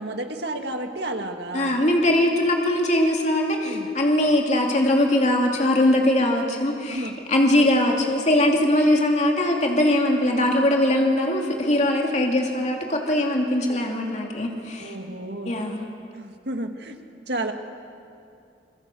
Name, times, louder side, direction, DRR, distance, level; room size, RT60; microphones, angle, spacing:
voice 1, 0.0-1.8 3.6-3.9 6.9-7.1 7.5-7.7 13.6-13.8 14.8-15.6 16.1-17.0 17.3-17.5, right 1 dB, 65° right, 5 dB, 2.0 m, -31 dB
voice 2, 1.5-15.0 15.5-15.8, left 1 dB, 40° left, 1 dB, 2.6 m, -21 dB
27.0 x 22.0 x 7.7 m, 2.5 s
head